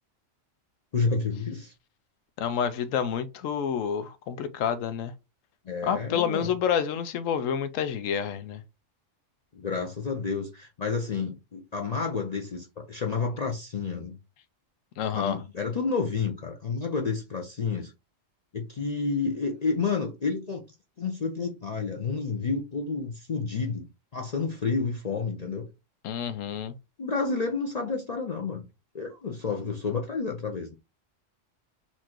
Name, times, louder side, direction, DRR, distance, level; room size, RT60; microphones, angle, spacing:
voice 1, 0.9-1.7 5.7-6.5 9.5-14.2 15.1-17.9 18.5-20.6 21.0-23.9 24.1-25.7 27.0-28.6 28.9-30.8, left 4 dB, 50° left, 0.5 m, -30 dB
voice 2, 2.4-5.1 5.8-8.6 15.0-15.4 26.0-26.7, left 8 dB, 85° left, 1.0 m, -28 dB
4.3 x 2.5 x 4.3 m
omnidirectional pair, 1.3 m